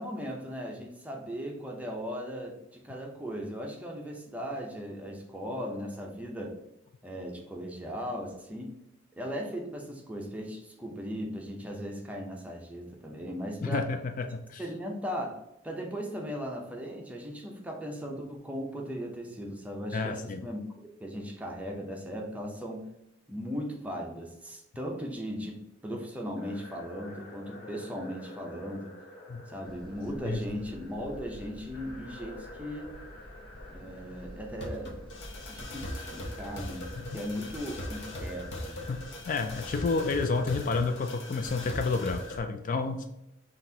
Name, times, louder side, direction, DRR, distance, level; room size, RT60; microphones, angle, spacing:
voice 1, 0.0-6.6 7.0-8.7 9.2-13.9 14.6-20.6 21.0-22.9 23.3-28.9 29.5-32.9 33.7-34.9 35.5-36.9 37.1-38.8, equal, 5° right, 0 dB, 0.6 m, -37 dB
voice 2, 13.6-14.6 19.9-20.5 29.3-29.4 30.2-30.4 37.0-37.2 38.9-43.1, left 4 dB, 45° left, 7 dB, 0.3 m, -30 dB
sound 1, 26.4-42.4, left 1 dB, 60° left, 0.9 m, -42 dB
sound 2, 29.6-40.1, equal, 25° left, 0.9 m, -49 dB
5.8 x 2.5 x 2.8 m, 0.88 s
head